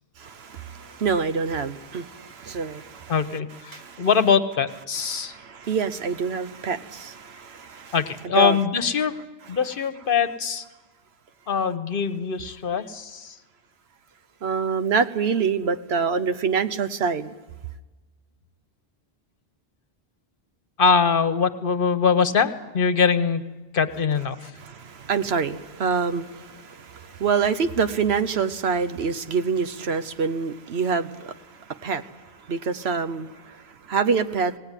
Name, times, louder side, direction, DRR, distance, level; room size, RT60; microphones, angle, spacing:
voice 1, 0.2-3.1 3.7-4.1 5.1-8.0 8.3-8.6 14.4-17.3 24.5-34.6, right 5 dB, 80° right, 11 dB, 1.1 m, -26 dB
voice 2, 3.1-5.3 7.9-9.1 9.5-10.6 11.5-13.4 20.8-23.4 23.7-24.5, left 6 dB, 60° left, 11 dB, 1.1 m, -22 dB
18.5 x 17.5 x 9.8 m, 1.2 s
omnidirectional pair, 1.1 m